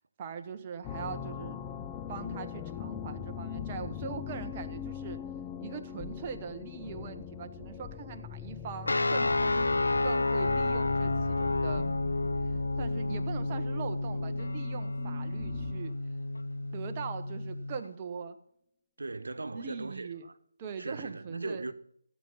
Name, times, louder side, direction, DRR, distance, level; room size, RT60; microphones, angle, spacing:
voice 1, 0.2-1.6 2.1-5.2 5.6-11.9 12.4-15.9 16.7-18.4 19.5-20.3 20.6-21.6, right 6 dB, 20° right, 1.1 m, -41 dB
sound 1, 0.8-15.9, left 8 dB, 15° left, 0.4 m, -41 dB
sound 2, 8.9-17.8, left 2 dB, 80° left, 0.5 m, -30 dB
voice 2, 19.0-20.3 20.8-21.7, right 3 dB, 75° right, 1.2 m, -38 dB
15.5 x 8.5 x 5.7 m
figure-of-eight pair, 165°, 0 cm